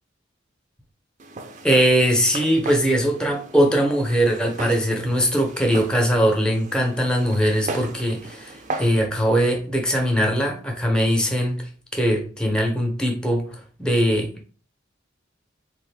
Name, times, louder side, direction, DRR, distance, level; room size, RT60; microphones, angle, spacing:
Walk footsteps, 1.2-9.0, right 2 dB, 40° right, 0.4 m, -37 dB
voice 1, 1.6-14.5, equal, 5° left, 2 dB, 0.6 m, -21 dB
3.5 x 2.6 x 3.3 m, 0.41 s
head